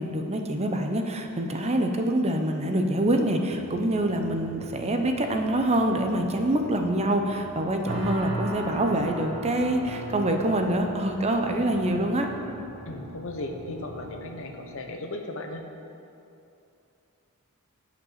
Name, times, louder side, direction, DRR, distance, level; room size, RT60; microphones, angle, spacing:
voice 1, 0.0-12.3, right 1 dB, 30° right, 4 dB, 0.6 m, -25 dB
Motorcycle / Idling, 3.5-14.2, left 1 dB, 30° left, 2.4 m, -49 dB
sound 1, 7.9-14.7, right 1 dB, 75° right, 1.8 m, -38 dB
voice 2, 12.9-15.6, left 2 dB, 65° left, 4 dB, 0.9 m, -36 dB
8.3 x 5.2 x 7.3 m, 2.7 s
head